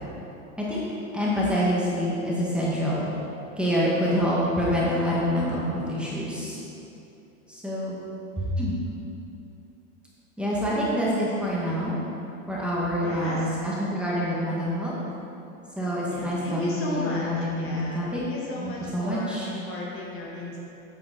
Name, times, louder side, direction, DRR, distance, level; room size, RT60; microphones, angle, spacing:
voice 1, 1.1-3.1 3.6-6.6 7.5-8.0 8.4-8.8 10.4-12.0 12.5-14.9 15.8-18.2 18.6-19.5, equal, 5° right, -7 dB, 1.6 m, -26 dB
voice 2, 10.5-10.8 13.0-13.6 16.1-20.6, left 2 dB, 35° left, -3 dB, 1.5 m, -35 dB
8.1 x 6.9 x 4.0 m, 2.8 s
supercardioid pair, 125°, 40 cm